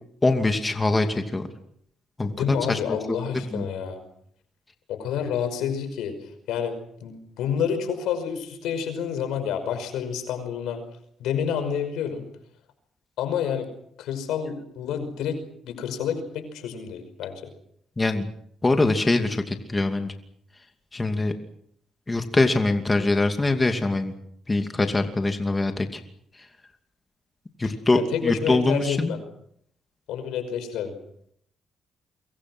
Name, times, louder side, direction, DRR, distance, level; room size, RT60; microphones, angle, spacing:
voice 1, 0.2-1.5 2.2-2.3 2.7-3.2 3.5-3.6 18.0-18.3 18.6-20.1 20.9-21.3 22.1-24.1 24.5-26.0 27.6-29.1, left 2 dB, 20° left, 6 dB, 2.6 m, -23 dB
voice 2, 2.2-4.0 4.9-6.1 6.5-10.8 11.2-12.3 13.2-13.7 14.0-15.4 15.6-17.5 27.9-29.2 30.1-30.9, left 8 dB, 90° left, 8 dB, 5.5 m, -29 dB
29.0 x 24.0 x 6.3 m, 0.69 s
cardioid pair, 90°, 0 cm